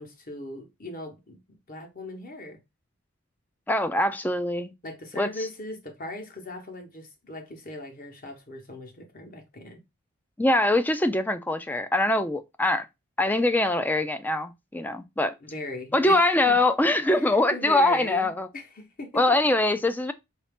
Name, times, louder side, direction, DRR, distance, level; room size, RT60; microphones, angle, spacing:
voice 1, 0.0-1.4 1.7-2.6 4.8-9.8 15.4-16.2 16.5-16.6 17.1-19.4, left 2 dB, 40° left, 1.0 m, -39 dB
voice 2, 3.7-4.7 5.2-5.3 10.4-12.9 13.2-15.3 15.9-18.5 19.1-20.1, left 2 dB, 10° left, 0.3 m, -23 dB
4.8 x 2.7 x 3.5 m
head